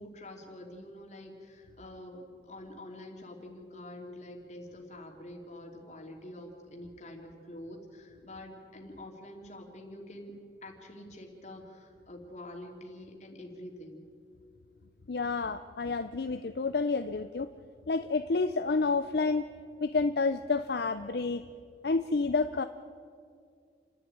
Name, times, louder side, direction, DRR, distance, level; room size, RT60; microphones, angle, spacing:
voice 1, 0.0-10.3 10.6-14.0, left 1 dB, 40° left, 1 dB, 2.8 m, -46 dB
voice 2, 15.1-17.5 17.9-19.5 19.8-21.4 21.8-22.6, left 4 dB, 60° left, 9 dB, 0.5 m, -29 dB
29.0 x 11.0 x 9.1 m, 2.3 s
head